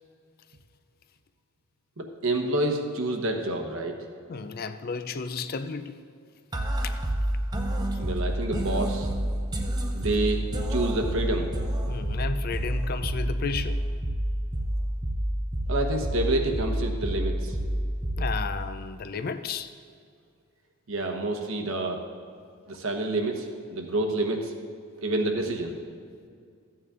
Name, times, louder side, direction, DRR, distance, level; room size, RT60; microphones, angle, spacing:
voice 1, 2.0-3.9 8.0-9.1 9.9-10.4 10.7-11.5 15.7-17.5 20.9-22.0 22.7-24.5 25.0-25.8, right 2 dB, 65° right, 3 dB, 1.2 m, -28 dB
voice 2, 4.3-6.0 6.8-7.0 11.9-13.8 18.2-19.7, left 4 dB, 40° left, 10 dB, 0.4 m, -33 dB
sound 1, 6.5-18.5, right 1 dB, 20° right, 0.7 m, -29 dB
14.0 x 8.7 x 3.7 m, 2.3 s
head